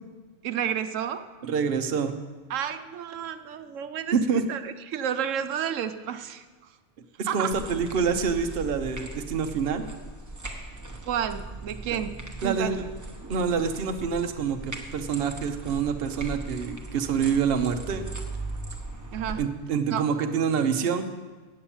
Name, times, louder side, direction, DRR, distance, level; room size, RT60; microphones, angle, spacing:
voice 1, 0.4-1.3 2.5-4.2 4.5-6.4 7.3-7.5 11.1-12.9 19.1-19.4 19.9-20.1, right 9 dB, 85° right, 9 dB, 1.1 m, -31 dB
voice 2, 1.4-2.1 4.1-4.4 7.2-9.8 12.4-12.8 13.3-18.1 19.4-21.1, right 6 dB, 55° right, 7 dB, 0.9 m, -26 dB
sound 1, 7.5-19.3, right 2 dB, 15° right, 1.0 m, -39 dB
8.7 x 8.4 x 7.2 m, 1.4 s
omnidirectional pair, 1.3 m